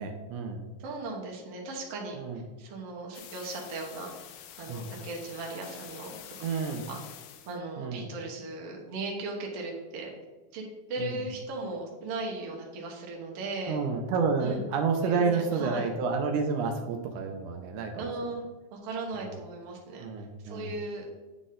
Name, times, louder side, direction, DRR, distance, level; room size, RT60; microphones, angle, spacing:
voice 1, 0.0-0.6 2.1-2.4 4.7-4.9 6.4-6.9 7.8-8.1 11.0-11.2 13.7-18.0 19.1-19.3 20.0-20.8, right 5 dB, 85° right, 3 dB, 2.2 m, -30 dB
voice 2, 0.8-2.2 2.6-4.1 4.5-6.3 6.7-7.0 7.5-10.1 10.5-10.6 10.9-13.8 14.4-14.7 15.0-15.9 18.0-18.4 18.7-20.1 20.4-21.1, right 2 dB, 60° right, -1 dB, 2.1 m, -37 dB
sound 1, 3.1-7.6, left 10 dB, 85° left, 2.0 m, -47 dB
9.4 x 4.1 x 3.8 m, 1.2 s
omnidirectional pair, 3.5 m